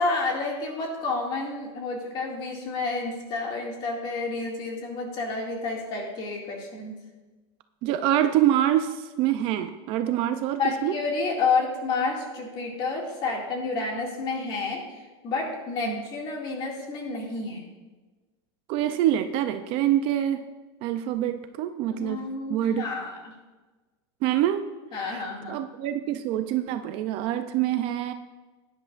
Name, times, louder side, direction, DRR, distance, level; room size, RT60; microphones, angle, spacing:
voice 1, 0.0-7.0 10.5-17.7 21.9-23.3 24.9-25.6, left 3 dB, 35° left, 0 dB, 2.2 m, -30 dB
voice 2, 7.8-11.0 15.9-16.0 18.7-20.4 20.8-22.2 22.5-22.8 24.2-24.7 25.1-25.2 25.5-28.1, right 12 dB, 40° right, 8 dB, 0.5 m, -25 dB
16.0 x 10.0 x 2.5 m, 1.2 s
supercardioid pair, 165°, 15 cm